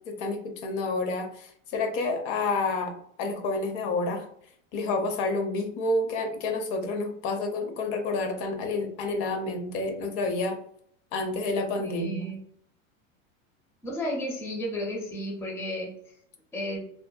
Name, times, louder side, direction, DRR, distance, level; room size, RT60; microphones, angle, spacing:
voice 1, 0.1-2.9 3.2-4.3 4.7-10.6 11.1-12.3, left 3 dB, 50° left, 5 dB, 0.6 m, -29 dB
voice 2, 11.8-12.4 13.8-15.9 16.5-16.9, equal, 5° left, -1 dB, 0.4 m, -33 dB
2.6 x 2.1 x 2.2 m, 0.65 s
supercardioid pair, 115°, 40 cm